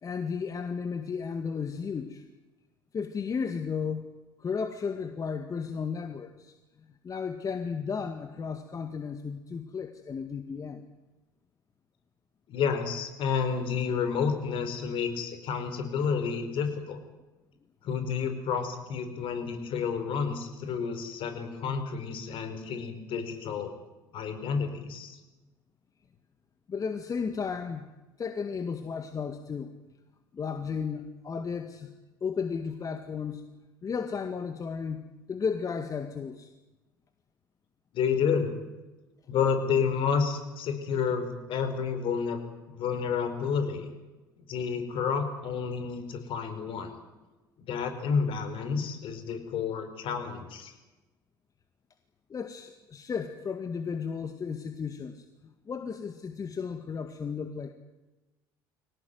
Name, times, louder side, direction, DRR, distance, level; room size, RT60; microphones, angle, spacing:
voice 1, 0.0-2.2 2.9-4.1 4.4-6.5 7.0-10.8 26.7-27.8 28.2-29.7 30.3-31.9 32.2-33.4 33.8-35.0 35.3-36.5 52.3-57.7, left 6 dB, 35° left, 8 dB, 2.0 m, -34 dB
voice 2, 12.5-17.0 17.8-23.7 24.1-25.2 37.9-38.5 39.3-42.4 42.7-43.9 44.5-46.9 47.7-50.7, left 6 dB, 55° left, 8 dB, 4.9 m, -30 dB
23.5 x 18.5 x 9.5 m, 1.1 s
hypercardioid pair, 65°, 11 cm